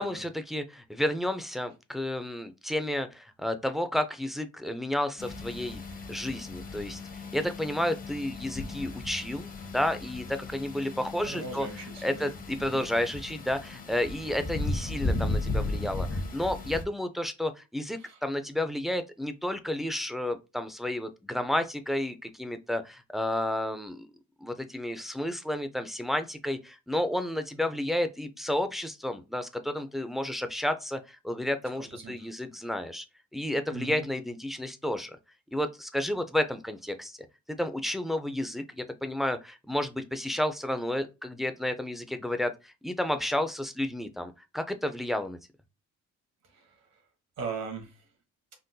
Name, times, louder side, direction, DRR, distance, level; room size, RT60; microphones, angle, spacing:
voice 1, 0.0-5.8 6.1-11.7 12.0-24.1 24.4-33.0 33.3-35.2 35.5-37.2 37.6-45.4, left 1 dB, ahead, 0.3 m, -31 dB
sound 1, 5.2-16.8, left 2 dB, 30° left, 0.7 m, -35 dB
voice 2, 11.2-12.3 12.6-12.9 18.0-18.2 31.8-32.3 33.7-34.1 46.5-47.0 47.4-48.0, right 4 dB, 60° right, 1.3 m, -40 dB
3.8 x 2.5 x 2.2 m
cardioid pair, 90°, 30 cm